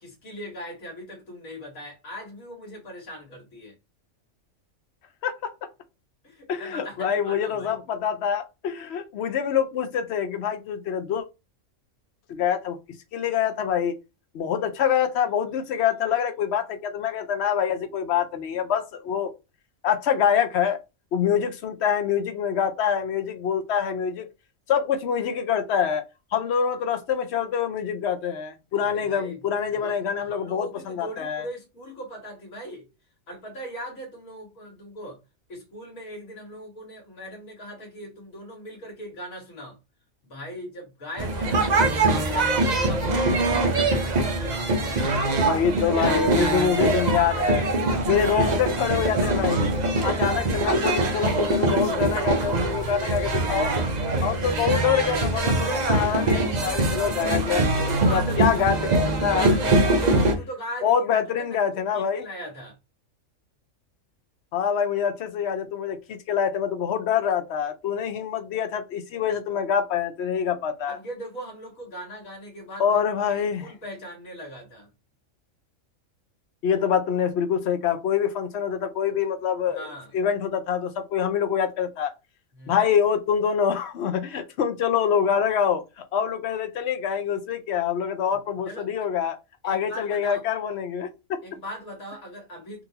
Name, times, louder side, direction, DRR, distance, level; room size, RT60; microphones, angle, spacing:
voice 1, 0.0-3.7 6.2-7.8 28.8-29.4 29.7-32.8 33.3-35.2 35.5-39.8 40.2-41.8 42.2-45.4 45.8-47.0 57.8-58.6 59.8-61.6 61.9-62.8 70.9-74.9 79.7-80.1 82.5-82.8 88.7-88.9 89.6-90.4 91.4-92.8, equal, 85° left, 1.9 m, -39 dB
voice 2, 5.2-5.7 6.5-11.2 12.3-12.8 13.1-14.0 14.3-19.3 19.8-20.8 21.1-24.3 24.7-26.1 26.3-31.5 45.4-47.6 48.0-49.7 50.0-53.7 54.2-57.6 58.1-59.6 60.8-62.2 64.5-71.0 72.8-73.7 76.6-82.1 82.7-89.4 89.6-91.4, left 8 dB, 60° left, 0.8 m, -25 dB
sound 1, 41.2-60.3, right 2 dB, 45° right, 0.6 m, -23 dB
3.9 x 2.6 x 2.7 m
omnidirectional pair, 1.4 m